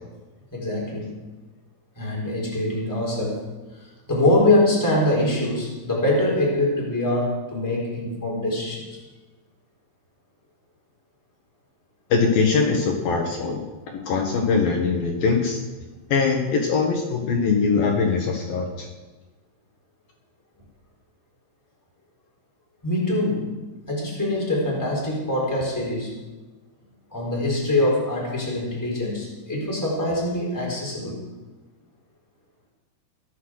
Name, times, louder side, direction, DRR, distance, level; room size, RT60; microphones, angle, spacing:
voice 1, 0.5-1.1 2.0-3.5 3.8-9.0 22.8-23.5 23.9-26.2 27.1-31.2, left 1 dB, 5° left, -4 dB, 3.8 m, -24 dB
voice 2, 12.1-13.6 13.9-15.6 16.1-18.9, left 5 dB, 65° left, 1 dB, 3.1 m, -22 dB
21.5 x 8.3 x 6.4 m, 1.2 s
omnidirectional pair, 4.8 m